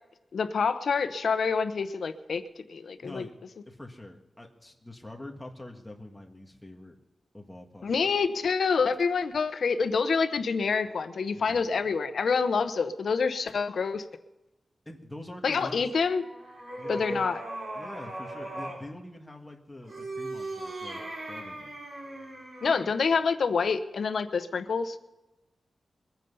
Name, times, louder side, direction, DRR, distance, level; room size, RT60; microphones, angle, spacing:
voice 1, 0.3-2.4 2.7-3.2 7.8-14.0 15.4-16.2 16.9-17.4 22.6-25.0, left 5 dB, 70° left, 10 dB, 0.9 m, -27 dB
voice 2, 3.0-3.3 3.6-7.0 7.3-8.1 11.3-11.9 14.8-15.9 16.8-17.2 17.7-21.0 21.3-21.8, left 1 dB, 10° left, 2 dB, 1.7 m, -45 dB
sound 1, 15.9-18.9 19.8-23.0, right 1 dB, 55° right, 4.8 m, -38 dB
22.0 x 9.2 x 5.5 m, 1.0 s
wide cardioid pair, 170°, 0 cm